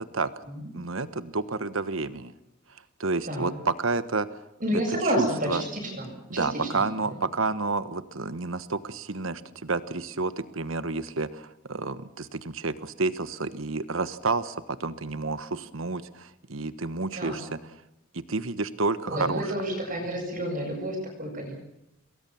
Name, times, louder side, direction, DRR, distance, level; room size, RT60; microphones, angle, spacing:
voice 1, 0.7-2.3 3.0-4.3 5.0-5.6 6.3-17.5 18.1-19.5, right 3 dB, 80° right, 13 dB, 1.3 m, -30 dB
voice 2, 4.6-6.1 6.3-6.8 17.1-17.3 19.1-21.5, equal, 40° right, 1 dB, 7.6 m, -30 dB
28.0 x 21.5 x 7.2 m, 0.87 s
head